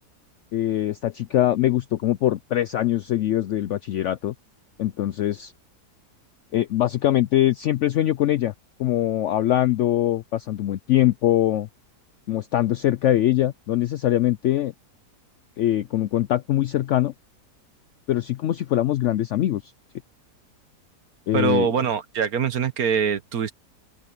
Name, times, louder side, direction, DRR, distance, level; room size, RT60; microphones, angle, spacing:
voice 1, 0.5-4.3 4.8-5.5 6.5-8.5 8.8-11.7 12.3-14.7 15.6-17.1 18.1-19.6 21.3-21.7, left 13 dB, 85° left, 0.6 m, -22 dB
voice 2, 21.3-23.5, right 7 dB, 60° right, 1.5 m, -23 dB
open air
omnidirectional pair, 1.8 m